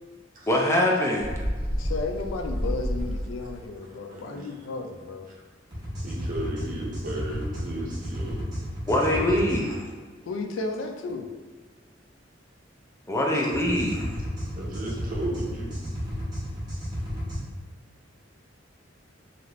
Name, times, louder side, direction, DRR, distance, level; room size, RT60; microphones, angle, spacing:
voice 1, 0.5-1.3 8.9-9.7 13.1-14.1, left 1 dB, 15° left, -1 dB, 0.4 m, -23 dB
Bird, 1.2-3.7, equal, 55° left, 1.2 m, -30 dB
voice 2, 1.7-5.3 9.1-9.3 10.3-11.3, left 3 dB, 90° left, 4 dB, 0.4 m, -33 dB
voice 3, 4.1-4.5 5.3-5.4 6.0-8.4 9.6-9.8 13.5-13.6 13.9-14.1 14.5-15.7, right 1 dB, 45° right, -3 dB, 0.6 m, -35 dB
sound 1, 5.7-9.6 13.5-17.4, equal, 20° right, 1.1 m, -33 dB
2.7 x 2.4 x 3.0 m, 1.5 s
head